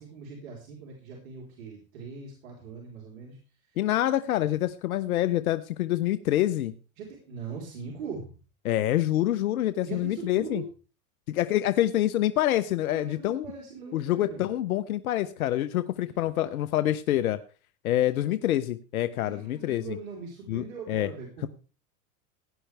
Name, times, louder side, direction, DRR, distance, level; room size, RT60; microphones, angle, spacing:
voice 1, 0.0-3.4 3.7-3.8 7.0-8.4 9.8-10.7 12.9-14.5 16.0-16.1 16.4-16.5 19.2-21.5, right 5 dB, 70° right, -1 dB, 4.1 m, -41 dB
voice 2, 3.8-6.7 8.6-10.6 11.3-13.5 13.9-17.4 17.8-20.0 20.5-21.1, left 13 dB, 85° left, 13 dB, 0.8 m, -26 dB
17.0 x 10.0 x 3.4 m, 0.35 s
hypercardioid pair, 120°, 42 cm